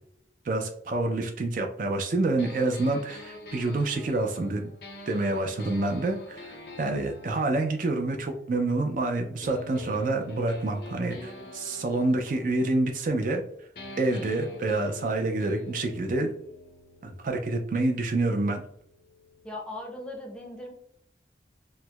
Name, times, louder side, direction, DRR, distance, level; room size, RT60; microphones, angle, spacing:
voice 1, 0.5-4.7 5.1-13.4 14.0-16.3 17.0-18.6, right 2 dB, 50° right, 4 dB, 0.3 m, -27 dB
sound 1, 2.4-8.9 9.4-13.4 13.8-19.5, left 2 dB, 65° left, 0.6 m, -46 dB
voice 2, 19.4-20.7, left 1 dB, 5° left, 0 dB, 0.5 m, -38 dB
4.4 x 2.0 x 2.2 m, 0.68 s
head